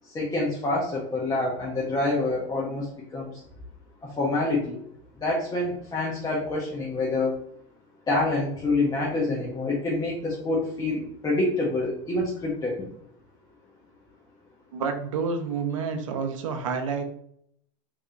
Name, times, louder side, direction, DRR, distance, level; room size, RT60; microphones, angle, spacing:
voice 1, 0.1-2.9 3.1-3.3 4.2-4.8 5.2-7.3 8.1-12.7, left 2 dB, 25° left, -4 dB, 1.1 m, -26 dB
voice 2, 14.7-17.0, right 5 dB, 85° right, 7 dB, 0.7 m, -29 dB
3.3 x 2.9 x 3.9 m, 0.70 s
hypercardioid pair, 100°, 16 cm